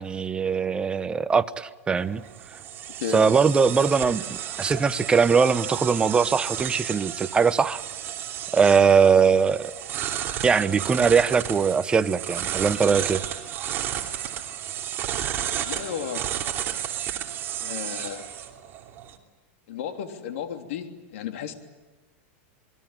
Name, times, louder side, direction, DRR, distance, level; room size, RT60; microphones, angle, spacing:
voice 1, 0.0-2.2 3.1-7.8 8.5-9.7 10.4-13.2, right 5 dB, 15° right, 12 dB, 0.9 m, -21 dB
sound 1, 2.0-19.2, right 10 dB, 30° right, 3.0 m, -32 dB
voice 2, 15.6-16.2 17.6-18.3 19.7-21.5, left 9 dB, 70° left, 5 dB, 3.2 m, -33 dB
27.0 x 21.5 x 9.0 m, 1.2 s
supercardioid pair, 145°, 7 cm